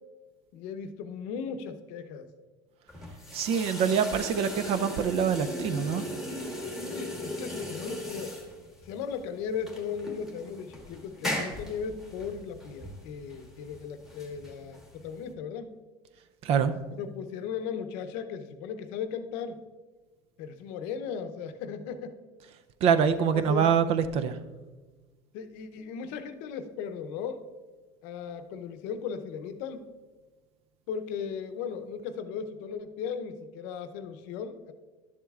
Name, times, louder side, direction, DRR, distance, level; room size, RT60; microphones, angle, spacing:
voice 1, 0.5-2.3 6.9-8.4 8.8-15.8 16.9-19.6 20.4-22.2 23.0-23.7 25.3-27.4 28.0-29.9 30.9-34.7, left 6 dB, 70° left, 8 dB, 0.7 m, -37 dB
sound 1, 2.9-15.3, equal, 5° right, 1.4 m, -38 dB
voice 2, 3.3-6.1 16.4-16.7 22.8-24.4, right 7 dB, 50° right, 12 dB, 0.5 m, -25 dB
11.0 x 7.2 x 2.4 m, 1.3 s
cardioid pair, 135°, 13 cm